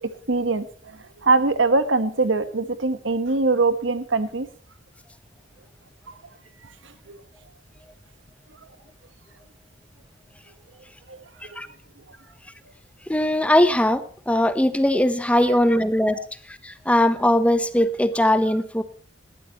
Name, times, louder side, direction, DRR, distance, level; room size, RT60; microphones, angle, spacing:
voice 1, 0.0-4.5 6.8-7.2 11.1-11.2, right 3 dB, 90° right, 11 dB, 1.4 m, -23 dB
voice 2, 13.1-16.2 16.5-18.8, left 1 dB, 5° left, 11 dB, 0.9 m, -20 dB
19.5 x 13.5 x 3.1 m, 0.43 s
head